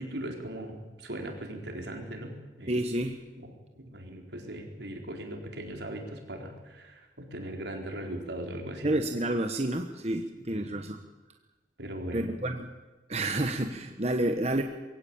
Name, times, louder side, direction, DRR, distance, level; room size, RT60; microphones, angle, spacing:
voice 1, 0.0-2.7 3.4-3.5 3.8-8.9 10.5-10.8 11.8-12.3, right 1 dB, 80° right, 2 dB, 4.3 m, -39 dB
voice 2, 2.7-3.2 8.8-11.0 12.1-12.7 13.1-14.6, right 1 dB, 35° right, 5 dB, 1.2 m, -29 dB
22.5 x 16.5 x 8.8 m, 1.1 s
head